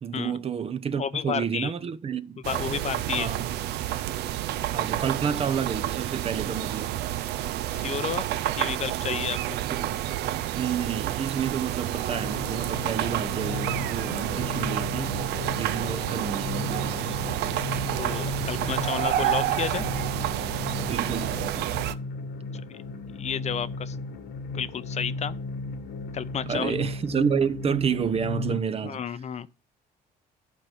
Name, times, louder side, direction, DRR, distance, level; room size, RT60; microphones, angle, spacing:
voice 1, 0.0-2.4 3.2-3.5 4.7-7.0 9.7-10.0 10.5-15.1 15.6-17.2 20.8-21.4 26.5-29.0, right 7 dB, 35° right, 0.7 m, -29 dB
voice 2, 1.0-1.7 2.4-3.3 7.7-8.2 8.6-9.4 18.0-19.9 23.2-24.2 24.5-25.4 26.1-26.8 28.8-29.5, left 8 dB, 40° left, 0.6 m, -31 dB
sound 1, 2.4-21.9, right 13 dB, 80° right, 0.6 m, -29 dB
sound 2, 12.1-28.6, left 3 dB, 80° left, 1.5 m, -35 dB
11.5 x 4.5 x 7.9 m
cardioid pair, 110°, 17 cm